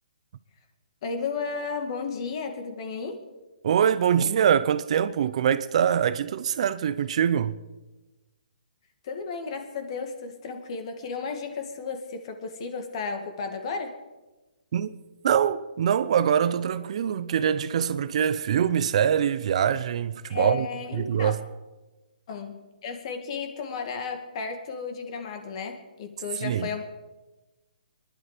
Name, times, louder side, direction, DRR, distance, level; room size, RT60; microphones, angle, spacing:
voice 1, 1.0-3.2 9.0-14.0 20.3-21.3 22.3-26.8, left 5 dB, 40° left, 2.2 m, -33 dB
voice 2, 3.6-7.6 14.7-14.9 15.2-20.7 20.9-21.4 26.4-26.7, right 8 dB, 45° right, 0.6 m, -24 dB
24.0 x 11.5 x 5.1 m
hypercardioid pair, 165°, 5 cm